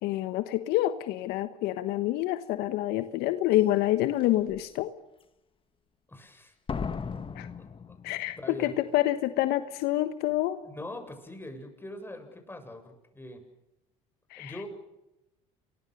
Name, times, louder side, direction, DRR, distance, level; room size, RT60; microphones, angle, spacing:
voice 1, 0.0-4.9 7.3-7.5 8.0-10.6 14.3-14.5, left 15 dB, 70° left, 11 dB, 1.3 m, -27 dB
Slam, 3.5-3.6 4.2-4.6 6.7-8.6 8.8-8.9, left 5 dB, 30° left, 1.8 m, -37 dB
voice 2, 6.1-6.5 8.4-8.8 10.6-13.4 14.4-14.7, left 1 dB, 10° left, 6 dB, 7.3 m, -42 dB
28.5 x 23.0 x 6.7 m, 0.92 s
hypercardioid pair, 75°, 17 cm